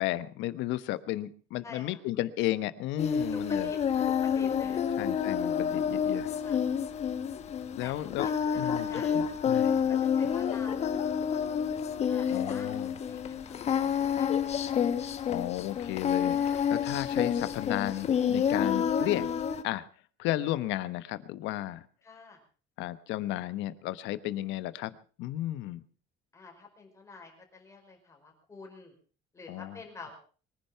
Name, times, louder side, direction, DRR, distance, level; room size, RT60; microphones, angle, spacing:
voice 1, 0.0-3.7 5.0-6.4 7.7-8.3 8.5-9.8 12.3-13.0 15.3-19.3 19.6-19.8 20.2-21.9 22.8-24.9 25.2-25.8 29.5-29.8, left 15 dB, 80° left, 13 dB, 1.2 m, -33 dB
voice 2, 1.6-2.0 3.2-5.1 6.4-6.6 7.8-9.3 9.9-11.0 12.1-13.6 15.7-15.9 22.0-22.4 26.3-28.9 29.3-30.1, left 4 dB, 15° left, 2 dB, 5.0 m, -48 dB
Singing, 3.0-19.6, left 8 dB, 35° left, 1.3 m, -29 dB
23.0 x 10.5 x 5.8 m, 0.40 s
cardioid pair, 175°, 19 cm